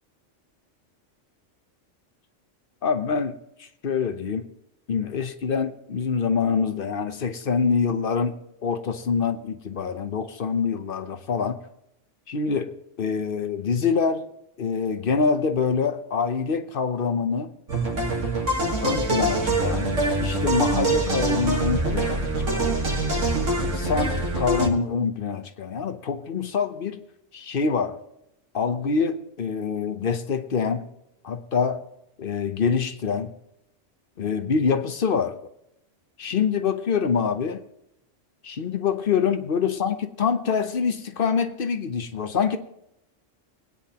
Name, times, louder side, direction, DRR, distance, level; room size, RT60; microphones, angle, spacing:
voice 1, 2.8-3.3 3.6-4.5 4.9-8.4 8.6-11.6 12.3-14.3 14.6-17.5 18.8-19.9 20.2-22.2 22.5-22.8 23.7-27.0 27.3-28.0 28.5-30.9 31.2-31.8 32.2-33.3 34.2-35.4 36.2-37.6 38.4-42.6, left 5 dB, 50° left, 9 dB, 1.0 m, -25 dB
sound 1, 17.7-24.7, right 2 dB, 80° right, 2.0 m, -24 dB
21.0 x 9.6 x 2.9 m, 0.82 s
omnidirectional pair, 1.3 m